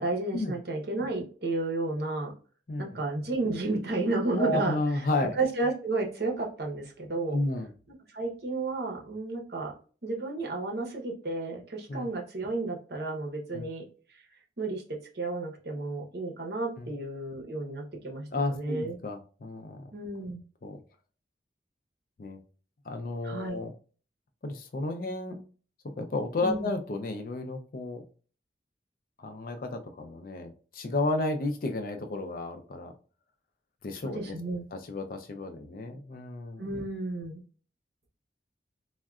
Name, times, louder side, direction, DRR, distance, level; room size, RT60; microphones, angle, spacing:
voice 1, 0.0-2.3 2.8-4.8 5.3-7.4 7.9-9.7 10.0-13.8 14.1-14.2 14.6-14.8 15.1-19.0 19.9-20.4 23.2-23.6 26.4-26.7 34.0-34.6 36.6-37.4, right 2 dB, 60° right, 0 dB, 0.8 m, -32 dB
voice 2, 2.7-3.0 4.4-5.4 7.3-7.7 11.9-12.1 13.5-13.6 16.8-16.9 18.3-19.9 20.6-20.8 22.2-22.4 22.9-23.7 24.4-25.4 26.0-28.0 29.2-32.9 33.8-34.4 34.7-36.7, left 2 dB, 50° left, 6 dB, 0.4 m, -32 dB
3.5 x 2.1 x 2.3 m, 0.39 s
head